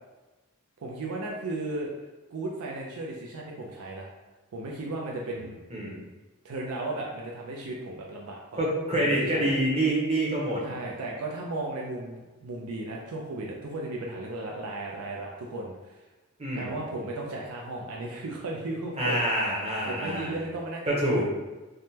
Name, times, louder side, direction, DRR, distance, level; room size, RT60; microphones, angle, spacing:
voice 1, 0.8-1.9 2.3-4.1 4.5-5.6 5.8-5.9 6.4-8.6 9.0-9.5 10.6-16.0 16.5-19.2 19.8-21.2, right 2 dB, 80° right, -2 dB, 0.4 m, -35 dB
voice 2, 8.6-10.6 16.4-16.7 19.0-20.3 20.9-21.2, right 1 dB, 30° right, -5 dB, 0.8 m, -26 dB
3.5 x 2.1 x 2.8 m, 1.2 s
head